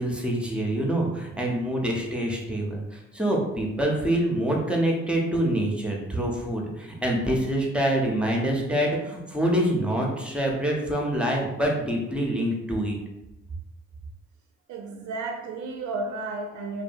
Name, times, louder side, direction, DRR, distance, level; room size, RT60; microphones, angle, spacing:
voice 1, 0.0-13.0, right 1 dB, 5° right, -1 dB, 0.7 m, -26 dB
voice 2, 14.7-16.8, right 3 dB, 70° right, 2 dB, 0.4 m, -33 dB
2.6 x 2.3 x 2.6 m, 0.94 s
supercardioid pair, 55°, 30 cm